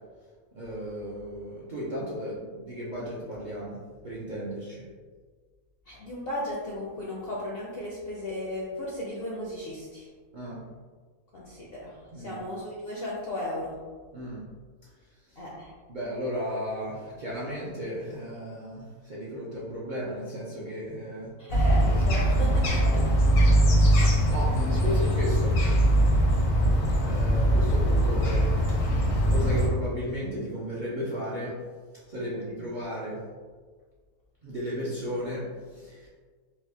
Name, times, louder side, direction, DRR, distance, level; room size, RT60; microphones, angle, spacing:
voice 1, 0.5-4.8 10.3-10.6 12.1-12.4 14.1-14.5 15.3-15.4 15.9-21.3 22.4-25.5 27.0-28.5 29.2-31.5 32.1-33.2 34.4-36.1, equal, 75° right, -7 dB, 0.4 m, -35 dB
voice 2, 5.9-10.1 11.3-13.8 15.4-15.7 21.4-23.0 32.2-32.5, left 1 dB, 65° left, -5 dB, 0.6 m, -35 dB
sound 1, 21.5-29.7, equal, 85° left, 1.3 m, -22 dB
4.5 x 2.1 x 2.7 m, 1.5 s
omnidirectional pair, 1.6 m